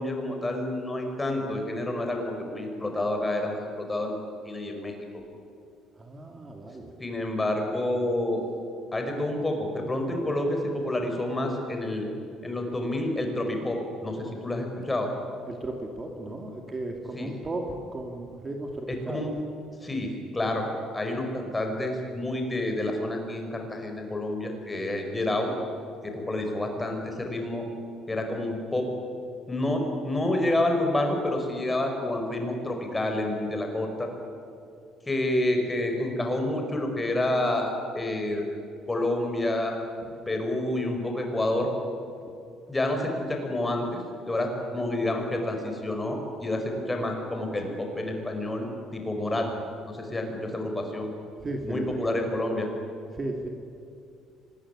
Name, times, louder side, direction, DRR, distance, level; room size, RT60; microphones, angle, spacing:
voice 1, 0.0-4.2 4.4-4.9 7.0-8.4 8.9-12.1 12.4-15.1 17.1-17.3 18.9-19.3 19.8-20.7 20.9-25.5 26.0-27.6 28.1-28.9 29.5-34.1 35.1-38.4 38.9-39.8 40.3-41.7 42.7-44.0 44.2-49.5 49.8-51.1 51.6-52.7, left 1 dB, 15° left, 3 dB, 5.1 m, -29 dB
voice 2, 6.0-6.9 15.4-19.3 42.3-42.4 49.3-49.5 51.4-52.2 53.1-53.5, right 2 dB, 25° right, 3 dB, 2.4 m, -35 dB
25.0 x 20.0 x 9.9 m, 2.5 s
cardioid pair, 135°, 0 cm